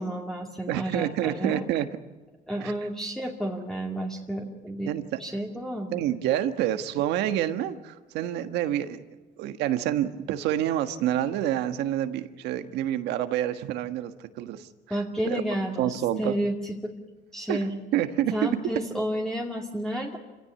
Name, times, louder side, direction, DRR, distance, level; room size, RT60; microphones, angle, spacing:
voice 1, 0.0-1.6 2.5-4.9 5.2-6.1 14.9-16.9 17.3-17.7 18.3-20.2, right 1 dB, 5° left, 0 dB, 2.3 m, -31 dB
voice 2, 0.7-1.9 2.6-2.7 4.9-5.2 5.9-9.0 9.4-14.7 15.2-15.4 15.8-16.4 17.5-17.6 17.9-18.3, right 12 dB, 90° right, 9 dB, 1.5 m, -28 dB
27.0 x 16.5 x 9.5 m, 1.3 s
cardioid pair, 110°, 17 cm